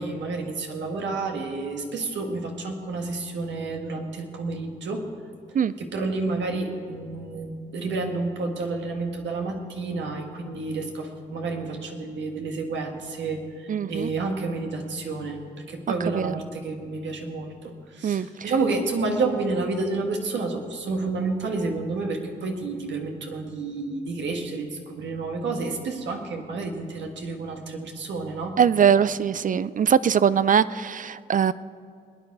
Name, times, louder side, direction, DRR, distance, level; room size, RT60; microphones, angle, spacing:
voice 1, 0.0-5.1 5.8-28.6, right 3 dB, 75° right, 2 dB, 1.7 m, -30 dB
voice 2, 13.7-14.1 16.1-16.3 18.0-18.5 28.6-31.5, right 8 dB, 45° right, 17 dB, 0.4 m, -21 dB
21.0 x 9.6 x 4.8 m, 2.3 s
supercardioid pair, 50°, 19 cm